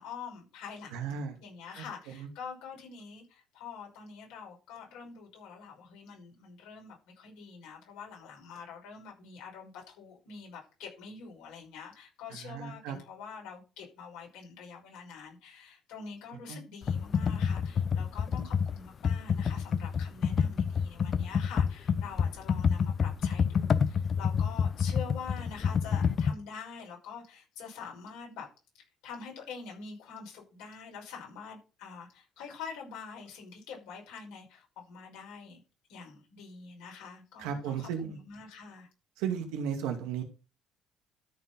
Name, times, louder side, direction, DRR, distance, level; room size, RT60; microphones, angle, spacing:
voice 1, 0.0-28.5 29.0-35.6 35.9-38.9, left 5 dB, 85° left, -1 dB, 5.9 m, -45 dB
voice 2, 0.9-1.4 1.7-2.3 12.3-13.0 16.5-16.6 37.4-38.2 39.2-40.2, right 7 dB, 90° right, 4 dB, 2.4 m, -35 dB
Computer keyboard, 16.8-26.3, left 7 dB, 45° left, 0.7 m, -28 dB
13.5 x 4.6 x 5.5 m, 0.33 s
supercardioid pair, 85°, 0 cm